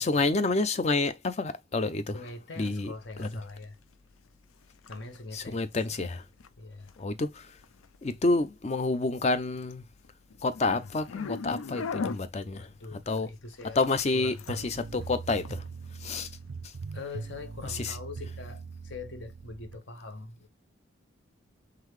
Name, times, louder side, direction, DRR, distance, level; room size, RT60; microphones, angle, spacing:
voice 1, 0.0-2.2 2.6-2.9 3.2-3.3 5.3-6.3 7.0-7.6 8.0-9.8 10.4-13.3 13.8-16.3 16.6-16.8 17.6-18.0, left 3 dB, 30° left, 0.4 m, -29 dB
voice 2, 2.1-3.8 4.9-5.7 6.6-7.0 12.5-13.8 14.1-14.7 16.9-20.5, left 3 dB, 60° left, 0.9 m, -43 dB
sound 1, 2.6-19.1, left 5 dB, 90° left, 0.5 m, -44 dB
sound 2, 14.5-19.8, right 4 dB, 70° right, 0.4 m, -41 dB
3.8 x 3.3 x 3.1 m
head